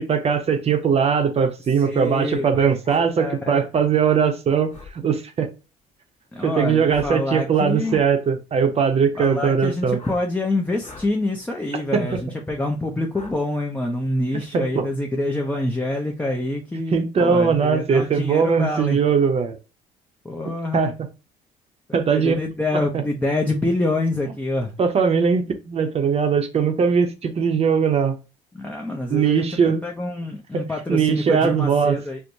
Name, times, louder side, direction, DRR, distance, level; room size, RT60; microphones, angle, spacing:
voice 1, 0.0-5.5 6.4-10.0 11.9-12.0 14.5-14.8 16.9-19.6 20.7-20.9 21.9-22.4 24.8-28.1 29.1-29.8 30.5-32.0, right 6 dB, 40° right, 0.7 m, -20 dB
voice 2, 1.8-3.7 6.3-8.0 9.1-19.0 20.2-20.9 22.1-24.8 28.5-32.2, left 2 dB, 10° left, 0.5 m, -26 dB
sound 1, 2.8-3.1 4.7-4.9 6.9-7.2 7.8-8.1 10.0-10.2 10.8-11.1 12.1-12.2 13.1-13.4, left 3 dB, 45° left, 1.2 m, -41 dB
4.5 x 2.1 x 2.6 m
cardioid pair, 110°, 17 cm